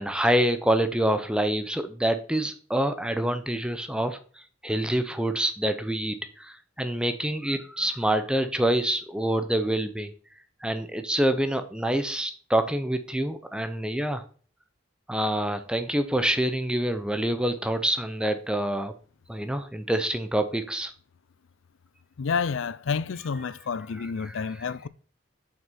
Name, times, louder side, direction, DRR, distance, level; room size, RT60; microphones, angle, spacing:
voice 1, 0.0-4.2 4.6-10.1 10.6-14.2 15.1-18.9 19.3-20.9 23.9-24.7, right 1 dB, 5° right, 0.6 m, -26 dB
voice 2, 22.2-24.9, left 5 dB, 80° left, 0.5 m, -29 dB
7.2 x 5.9 x 4.2 m
head